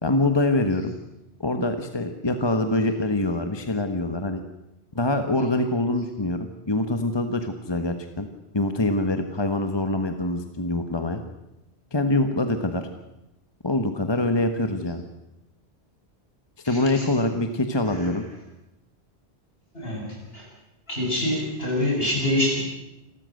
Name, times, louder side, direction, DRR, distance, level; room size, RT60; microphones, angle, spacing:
voice 1, 0.0-0.9 1.4-4.4 4.9-6.4 6.7-8.3 8.5-11.2 11.9-12.8 13.6-15.0 16.6-18.2, left 2 dB, 25° left, 7 dB, 1.3 m, -24 dB
voice 2, 16.6-17.1 17.8-18.1 19.7-20.5 20.9-22.6, left 1 dB, 60° left, -2 dB, 8.1 m, -26 dB
28.5 x 13.5 x 7.8 m, 0.92 s
omnidirectional pair, 1.1 m